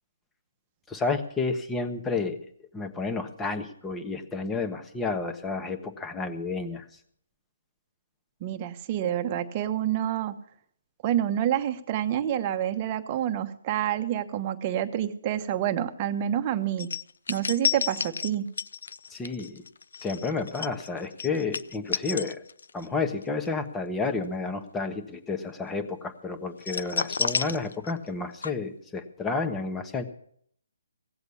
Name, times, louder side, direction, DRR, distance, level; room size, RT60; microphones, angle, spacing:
voice 1, 0.9-2.4 2.7-6.9 19.1-19.6 20.0-22.4 22.7-30.0, left 4 dB, 10° left, 7 dB, 1.3 m, -31 dB
voice 2, 8.4-10.3 11.0-16.9 17.3-18.5, right 11 dB, 30° right, 7 dB, 1.1 m, -28 dB
sound 1, 16.8-22.9 23.2-23.5 26.6-28.2 28.4-28.5, left 6 dB, 70° left, 0.5 m, -31 dB
17.0 x 8.0 x 7.0 m, 0.64 s
figure-of-eight pair, 145°, 0 cm